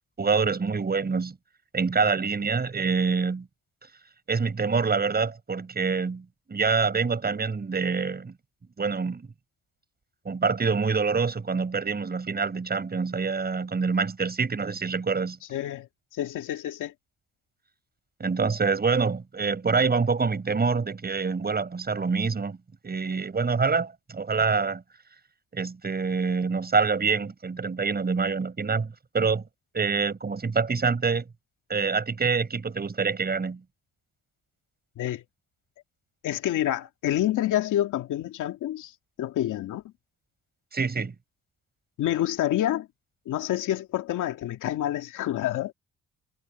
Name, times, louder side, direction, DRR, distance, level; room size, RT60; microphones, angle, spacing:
voice 1, 0.2-1.4 1.7-3.5 4.3-8.3 8.8-9.2 10.3-15.4 18.2-22.6 22.8-24.8 25.5-29.4 29.7-31.2 31.7-33.6 40.7-41.1, right 5 dB, 30° right, 7.0 m, -26 dB
voice 2, 15.5-16.9 35.0-35.2 36.2-38.9 39.2-39.8 42.0-42.9 43.3-45.7, left 12 dB, 80° left, 2.3 m, -28 dB
cardioid pair, 90°, 30 cm